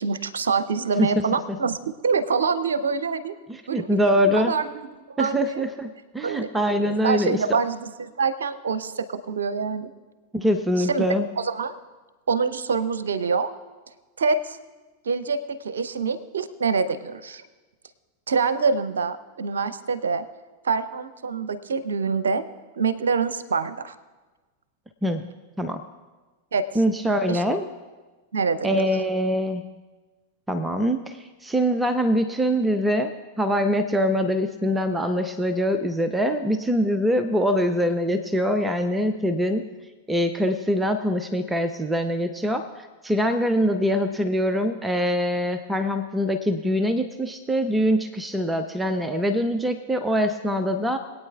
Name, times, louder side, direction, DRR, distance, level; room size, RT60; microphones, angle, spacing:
voice 1, 0.0-3.3 3.7-5.6 6.2-6.5 6.8-9.9 10.8-11.0 11.4-11.7 12.3-13.5 14.2-14.6 15.0-17.4 18.3-20.2 20.6-22.4 22.8-23.9 26.5-26.6 27.3-27.4 28.3-28.8, right 5 dB, 70° right, 13 dB, 0.7 m, -25 dB
voice 2, 3.5-4.5 5.2-7.4 10.3-11.3 25.0-25.2 25.6-25.8 26.7-27.6 28.6-29.7 30.5-33.1 33.4-39.6 40.1-51.0, equal, 10° right, 8 dB, 0.6 m, -23 dB
22.5 x 9.0 x 2.4 m, 1.3 s
figure-of-eight pair, 90°, 0 cm